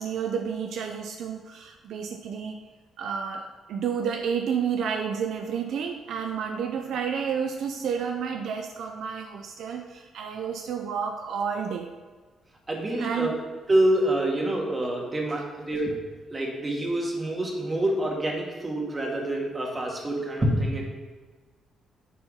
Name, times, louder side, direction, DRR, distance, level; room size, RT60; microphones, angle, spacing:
voice 1, 0.0-2.6 3.0-11.9 13.0-13.3, right 7 dB, 70° right, 4 dB, 0.6 m, -30 dB
voice 2, 12.7-15.9 16.3-20.8, right 1 dB, 25° right, -1 dB, 2.2 m, -26 dB
10.0 x 4.4 x 5.6 m, 1.4 s
cardioid pair, 90°, 0 cm